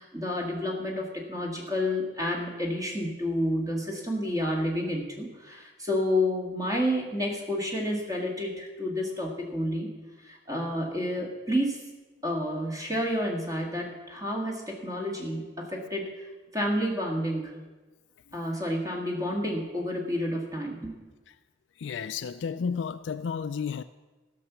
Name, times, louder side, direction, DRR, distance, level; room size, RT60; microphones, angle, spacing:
voice 1, 0.0-9.9 10.2-11.8 12.2-16.3 16.5-17.6 18.3-20.9, left 1 dB, 20° right, -1 dB, 1.9 m, -30 dB
voice 2, 21.8-23.8, left 6 dB, 75° left, 10 dB, 0.3 m, -32 dB
15.5 x 6.1 x 6.8 m, 1.2 s
head